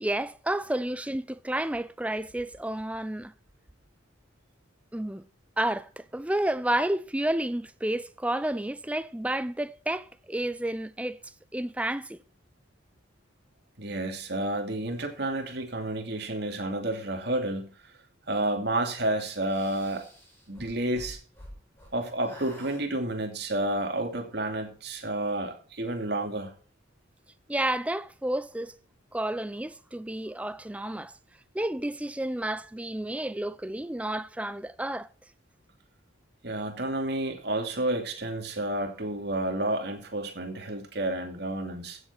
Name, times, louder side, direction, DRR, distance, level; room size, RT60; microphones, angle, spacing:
voice 1, 0.0-3.3 4.9-5.3 5.6-11.2 11.5-12.2 27.5-28.8 29.1-31.1 31.5-35.1, right 1 dB, 5° right, 0.4 m, -31 dB
voice 2, 13.8-17.7 18.3-20.1 20.5-21.2 21.9-26.5 36.4-42.0, right 1 dB, 55° right, 2.6 m, -30 dB
sound 1, 19.4-21.9 22.2-22.8, equal, 10° left, 5.0 m, -47 dB
15.5 x 7.6 x 4.5 m
head